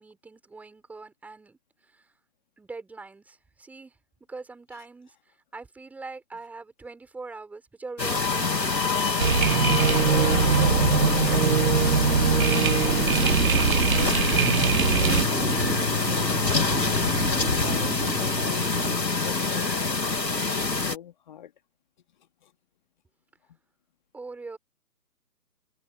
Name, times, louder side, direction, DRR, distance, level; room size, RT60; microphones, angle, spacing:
voice 1, 0.0-1.6 1.9-2.0 2.6-3.9 4.3-5.1 5.5-9.3 24.1-24.6, right 3 dB, 5° right, 6.0 m, -42 dB
sound 1, 8.0-21.0, left 4 dB, 90° left, 2.7 m, -26 dB
sound 2, 9.2-15.2, right 6 dB, 55° right, 1.5 m, -22 dB
voice 2, 10.6-10.9 11.2-21.5 22.4-22.5, left 10 dB, 30° left, 2.5 m, -43 dB
sound 3, 12.9-19.0, right 3 dB, 90° right, 3.3 m, -32 dB
figure-of-eight pair, 155°, 49 cm